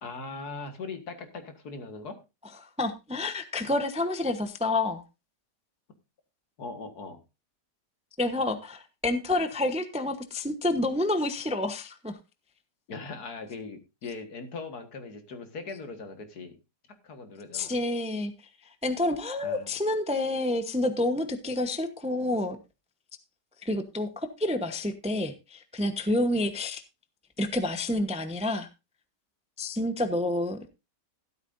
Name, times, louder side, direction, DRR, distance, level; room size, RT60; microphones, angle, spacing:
voice 1, 0.0-2.2 6.6-7.2 12.9-16.6 17.0-17.7 19.4-19.7, left 4 dB, 65° left, 7 dB, 2.2 m, -40 dB
voice 2, 2.6-5.0 8.2-12.2 17.5-18.3 18.8-22.6 23.6-26.8 27.4-28.7 29.6-30.7, left 2 dB, 5° right, 8 dB, 0.7 m, -29 dB
13.5 x 12.5 x 2.6 m, 0.27 s
omnidirectional pair, 1.8 m